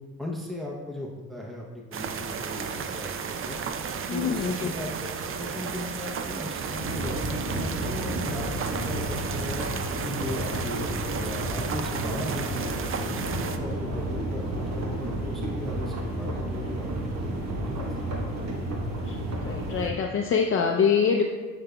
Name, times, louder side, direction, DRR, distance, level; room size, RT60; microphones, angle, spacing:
voice 1, 0.2-3.6 4.1-9.6 10.0-10.9 11.2-16.9 17.1-17.9, left 1 dB, ahead, -1 dB, 0.6 m, -38 dB
sound 1, 1.9-13.6, right 6 dB, 45° right, 0.5 m, -33 dB
voice 2, 4.1-4.8 13.2-13.5 19.0-19.2 19.4-21.2, left 6 dB, 45° left, 2 dB, 0.5 m, -25 dB
sound 2, 6.5-19.9, right 1 dB, 60° right, 1.1 m, -31 dB
8.7 x 5.0 x 2.2 m, 1.4 s
cardioid pair, 90°, 30 cm